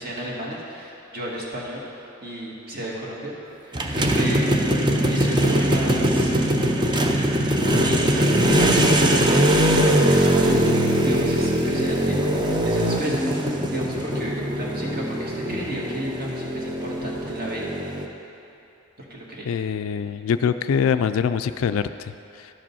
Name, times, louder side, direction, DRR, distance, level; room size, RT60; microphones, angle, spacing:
voice 1, 0.0-3.3 3.6-4.4 5.0-6.3 7.7-17.7 19.1-19.5, right 1 dB, 45° right, -4 dB, 1.6 m, -33 dB
sound 1, 3.7-18.0, right 1 dB, 20° right, 0.5 m, -21 dB
voice 2, 19.5-22.5, left 7 dB, 70° left, 11 dB, 0.3 m, -24 dB
12.0 x 5.1 x 5.5 m, 2.9 s
head